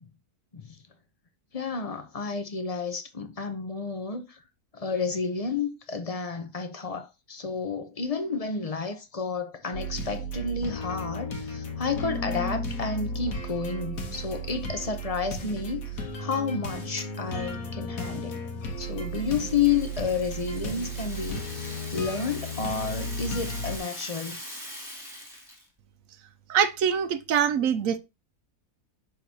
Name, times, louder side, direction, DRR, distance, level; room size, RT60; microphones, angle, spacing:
voice 1, 1.5-4.4 4.7-18.4 18.8-24.4, left 5 dB, 35° left, 0.6 m, -31 dB
sound 1, 9.7-23.8, equal, 65° left, 1.6 m, -34 dB
Rattle (instrument), 18.7-25.7, equal, ahead, 3.3 m, -42 dB
voice 2, 26.5-28.0, right 8 dB, 65° right, 1.0 m, -24 dB
11.0 x 3.8 x 2.8 m
omnidirectional pair, 1.7 m